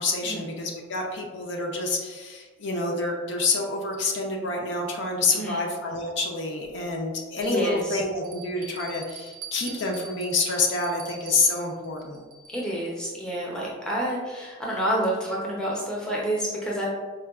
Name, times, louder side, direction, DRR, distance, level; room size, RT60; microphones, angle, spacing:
voice 1, 0.0-12.2, left 3 dB, 55° left, 0 dB, 0.5 m, -27 dB
voice 2, 5.3-5.7 7.4-8.0 12.5-16.9, right 1 dB, 5° left, -5 dB, 0.5 m, -29 dB
Bell, 6.6-6.7 7.4-7.5 8.2-12.8, right 4 dB, 85° right, 0.5 m, -44 dB
4.4 x 2.2 x 2.3 m, 1.4 s
head